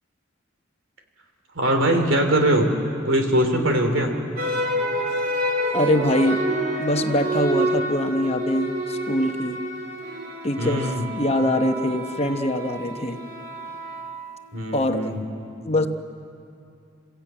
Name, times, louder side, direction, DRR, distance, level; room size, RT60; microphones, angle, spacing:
voice 1, 1.5-2.7 3.0-4.2 10.6-11.1 14.5-15.2, right 1 dB, 80° right, 5 dB, 2.9 m, -21 dB
sound 1, 4.4-14.8, right 1 dB, 50° right, 2.7 m, -28 dB
voice 2, 5.7-6.4 6.8-9.6 10.4-10.9 11.1-13.2 14.7-15.0 15.6-15.9, left 1 dB, 30° left, 6 dB, 0.9 m, -23 dB
28.5 x 15.0 x 8.9 m, 2.6 s
head